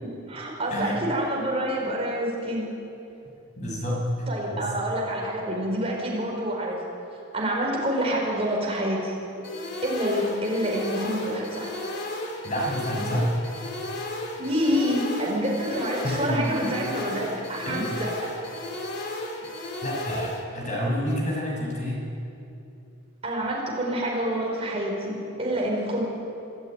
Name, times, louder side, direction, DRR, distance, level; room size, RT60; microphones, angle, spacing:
voice 1, 0.0-2.6 4.3-6.8 7.3-9.1 9.8-11.7 14.4-18.1 23.2-26.0, equal, 30° right, -2 dB, 4.9 m, -27 dB
voice 2, 0.7-1.0 3.5-4.6 12.4-13.3 16.0-16.7 17.6-17.9 19.8-22.0, equal, 35° left, -2 dB, 6.6 m, -28 dB
sound 1, 9.4-20.4, left 1 dB, 55° left, 2.8 m, -34 dB
26.5 x 14.0 x 9.3 m, 2.8 s
head